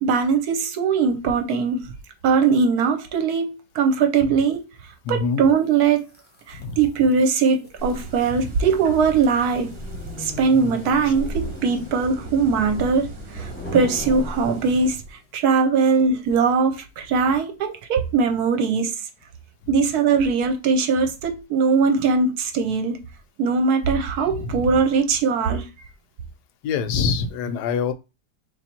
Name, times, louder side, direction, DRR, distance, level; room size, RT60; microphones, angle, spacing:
voice 1, 0.0-1.9 2.2-4.6 5.1-6.1 6.5-9.7 10.2-13.1 13.3-15.0 15.3-18.9 19.7-23.0 23.4-25.7, right 5 dB, 70° right, 1.0 m, -20 dB
voice 2, 5.0-5.4 6.5-6.8 8.3-8.4 24.3-24.7 26.6-27.9, left 5 dB, 75° left, 1.1 m, -25 dB
sound 1, 5.8-15.2, left 2 dB, 15° left, 0.3 m, -39 dB
sound 2, 7.8-15.0, equal, 40° right, 1.0 m, -39 dB
3.3 x 2.8 x 4.3 m
omnidirectional pair, 1.9 m